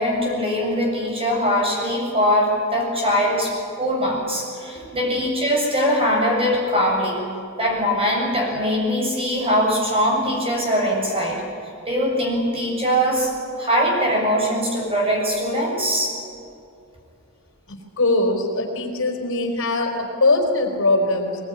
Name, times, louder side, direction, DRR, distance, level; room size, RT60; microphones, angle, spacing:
voice 1, 0.0-7.2 7.6-11.4 11.9-13.3 13.6-16.1, equal, 25° right, -1 dB, 7.6 m, -21 dB
voice 2, 17.7-21.5, left 2 dB, 65° left, 3 dB, 4.4 m, -22 dB
22.5 x 22.0 x 10.0 m, 2.5 s
head